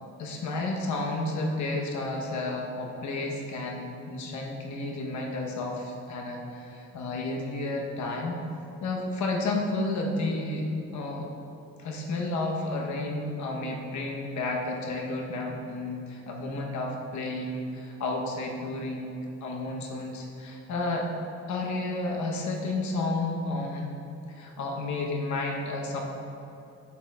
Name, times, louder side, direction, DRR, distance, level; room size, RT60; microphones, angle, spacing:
voice 1, 0.2-8.4 8.8-11.3 11.8-21.1 21.5-24.0 24.3-26.0, left 2 dB, 70° left, 0 dB, 0.9 m, -31 dB
6.9 x 6.4 x 2.3 m, 2.8 s
cardioid pair, 90°, 30 cm